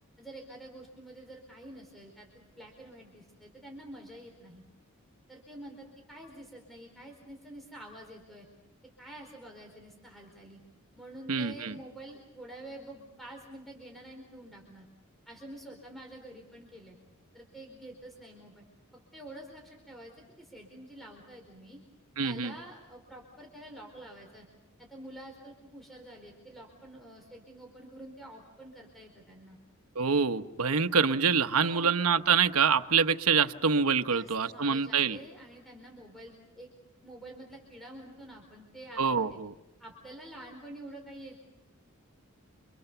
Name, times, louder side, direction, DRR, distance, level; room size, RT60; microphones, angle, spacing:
voice 1, 0.2-4.6 5.3-8.5 9.0-10.6 11.0-14.9 15.3-17.0 17.3-18.6 18.9-20.1 20.4-21.8 22.2-24.5 24.8-29.6 31.4-32.0 34.1-36.7 37.0-39.4 39.8-41.4, right 1 dB, ahead, 1 dB, 4.5 m, -48 dB
voice 2, 11.3-11.8 22.2-22.5 29.9-35.2 39.0-39.5, right 6 dB, 90° right, 9 dB, 1.0 m, -26 dB
29.0 x 26.5 x 6.9 m, 0.95 s
head